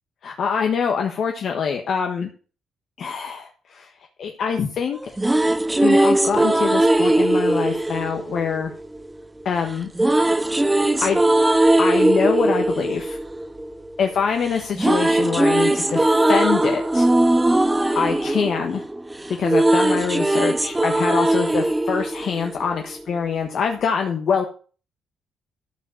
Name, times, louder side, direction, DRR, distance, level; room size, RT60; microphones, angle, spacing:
voice 1, 0.2-2.3 3.0-3.9 4.2-5.0 5.8-8.7 9.4-9.9 11.0-11.2 11.8-13.2 14.0-17.1 17.9-18.8 19.4-24.4, left 6 dB, 60° left, 3 dB, 1.4 m, -24 dB
sound 1, 4.9-9.1 10.0-14.2 14.5-23.0, right 1 dB, 15° right, 0.7 m, -19 dB
13.0 x 5.0 x 6.3 m, 0.39 s
cardioid pair, 90°, 0 cm